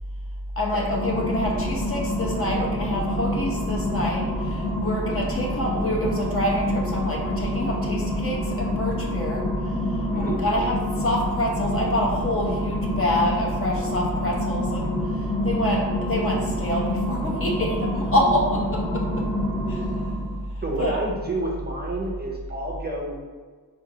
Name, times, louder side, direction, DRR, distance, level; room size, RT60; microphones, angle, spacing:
voice 1, 0.6-19.3 19.7-19.9 20.5-21.0, equal, 35° left, -2 dB, 0.6 m, -26 dB
sound 1, 0.7-20.4, left 1 dB, 80° left, 0.9 m, -28 dB
voice 2, 10.0-10.4 20.6-23.1, right 2 dB, 25° right, -2 dB, 0.4 m, -29 dB
4.8 x 2.4 x 2.7 m, 1.5 s
wide cardioid pair, 150°, 38 cm